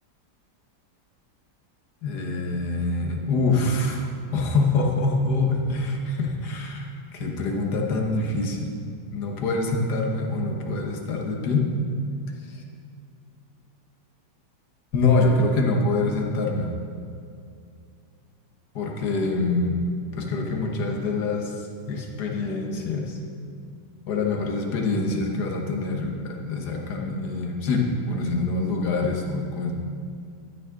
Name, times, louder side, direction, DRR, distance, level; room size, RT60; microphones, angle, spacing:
voice 1, 2.0-8.7 9.1-11.7 12.5-12.6 14.9-16.7 18.8-19.8 20.2-23.2 24.1-29.7, left 3 dB, 65° left, 1 dB, 1.8 m, -25 dB
12.5 x 9.4 x 3.8 m, 2.4 s
omnidirectional pair, 1.9 m